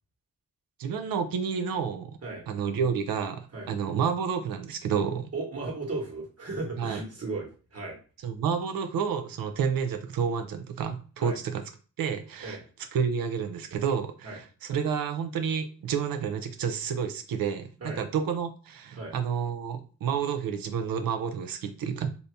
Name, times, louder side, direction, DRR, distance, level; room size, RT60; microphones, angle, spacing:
voice 1, 0.8-2.2 2.5-5.3 6.8-7.0 8.2-11.6 12.0-12.6 12.9-22.1, right 7 dB, 75° right, 7 dB, 0.6 m, -30 dB
voice 2, 5.3-8.0 11.2-11.4 12.4-12.6 14.2-14.4 17.8-18.0 18.9-19.1, right 3 dB, 40° right, -1 dB, 1.4 m, -35 dB
2.8 x 2.7 x 3.3 m, 0.37 s
cardioid pair, 70°, 36 cm